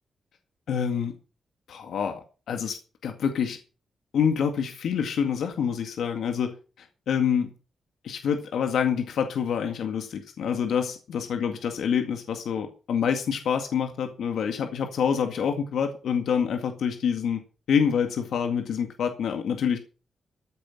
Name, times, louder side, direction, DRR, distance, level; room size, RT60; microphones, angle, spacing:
voice 1, 0.7-1.1 1.7-2.2 2.5-3.6 4.1-7.5 8.0-17.4 17.7-19.8, left 7 dB, 80° left, 5 dB, 2.0 m, -27 dB
14.5 x 9.2 x 5.9 m, 0.36 s
wide cardioid pair, 165°, 0 cm